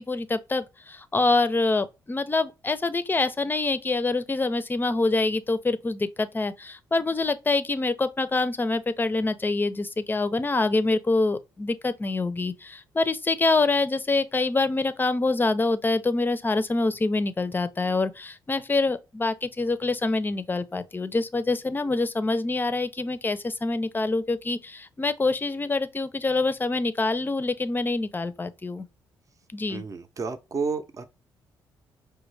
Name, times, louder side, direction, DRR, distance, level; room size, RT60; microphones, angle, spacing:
voice 1, 0.0-28.9 29.5-29.8, left 3 dB, 20° left, 0.5 m, -25 dB
voice 2, 29.7-31.0, right 4 dB, 40° right, 0.7 m, -31 dB
5.1 x 2.2 x 3.2 m
cardioid pair, 75°, 9 cm